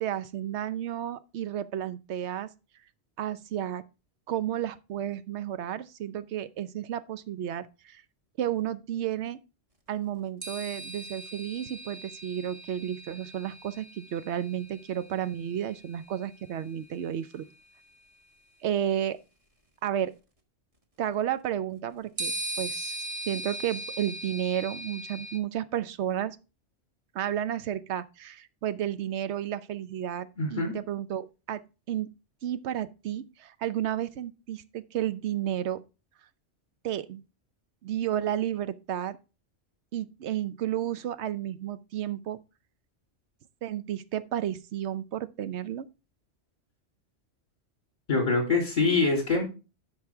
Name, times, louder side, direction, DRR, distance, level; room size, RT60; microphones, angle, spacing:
voice 1, 0.0-2.5 3.2-3.8 4.3-8.0 8.4-9.4 9.9-17.4 18.6-19.2 19.8-20.1 21.0-23.0 23.3-26.4 27.1-31.6 31.9-32.1 32.4-35.8 36.8-37.2 37.8-39.2 39.9-42.4 43.6-45.9, right 10 dB, 75° right, 0.9 m, -32 dB
sound 1, 10.4-16.0 17.3-17.4 22.2-25.4, right 1 dB, 30° right, 1.4 m, -39 dB
voice 2, 30.4-30.7 48.1-49.4, left 3 dB, 40° left, 3.4 m, -24 dB
12.5 x 5.2 x 3.4 m
omnidirectional pair, 1.2 m